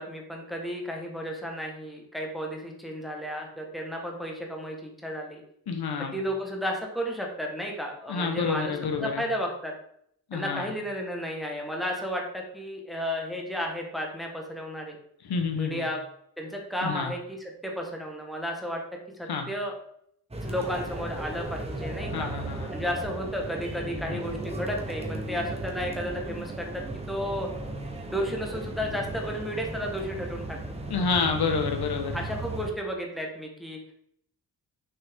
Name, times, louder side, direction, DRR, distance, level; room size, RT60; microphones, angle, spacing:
voice 1, 0.0-5.4 6.1-9.7 10.3-15.0 15.5-16.0 16.4-18.8 19.2-19.8 20.4-22.3 22.7-27.5 28.1-30.6 32.1-33.8, equal, ahead, 1 dB, 1.2 m, -33 dB
voice 2, 5.7-6.2 8.1-9.2 10.3-10.7 15.2-15.8 16.8-17.1 19.3-19.5 22.1-22.7 24.1-24.2 30.9-32.2, left 5 dB, 85° left, 5 dB, 1.1 m, -29 dB
sound 1, 20.3-32.7, right 2 dB, 15° right, 0.9 m, -36 dB
6.3 x 6.0 x 3.6 m, 0.69 s
wide cardioid pair, 160°, 37 cm